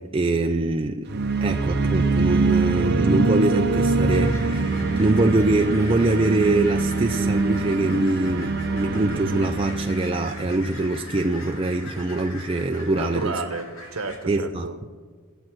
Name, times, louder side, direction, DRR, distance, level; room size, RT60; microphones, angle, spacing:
voice 1, 0.0-13.3 14.3-14.7, right 2 dB, 25° right, 0.4 m, -23 dB
sound 1, 1.1-11.1, right 3 dB, 50° right, 0.7 m, -24 dB
sound 2, 4.1-14.2, left 1 dB, 70° left, 2.4 m, -41 dB
voice 2, 13.0-14.9, right 3 dB, 65° right, 1.2 m, -31 dB
20.0 x 7.5 x 6.1 m
head